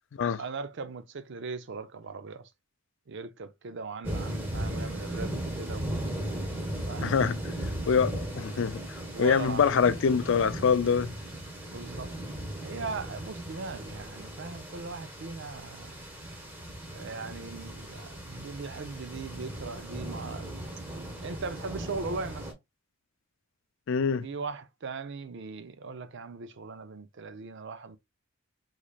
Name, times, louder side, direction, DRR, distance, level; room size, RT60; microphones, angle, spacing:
voice 1, 0.4-2.5 3.1-6.0 6.8-7.2 9.1-9.8 11.7-12.1 12.6-16.0 16.9-20.6 21.2-22.5 24.2-28.0, right 4 dB, 55° right, 0.5 m, -39 dB
sound 1, 4.0-22.5, right 1 dB, 10° right, 1.1 m, -37 dB
voice 2, 7.0-7.4 7.9-8.8 9.2-11.1 23.9-24.2, left 6 dB, 60° left, 0.4 m, -24 dB
3.9 x 3.2 x 2.3 m
head